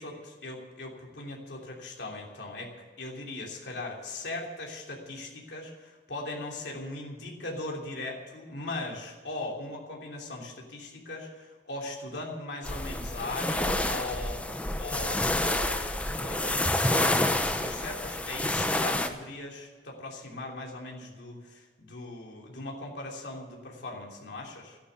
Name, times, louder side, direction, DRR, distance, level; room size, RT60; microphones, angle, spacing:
voice 1, 0.0-2.7 3.0-14.4 14.7-15.8 16.1-24.8, left 2 dB, 85° left, -1 dB, 3.2 m, -39 dB
sound 1, 12.6-19.1, left 1 dB, 10° left, 0.8 m, -28 dB
13.5 x 11.0 x 8.3 m, 1.5 s
head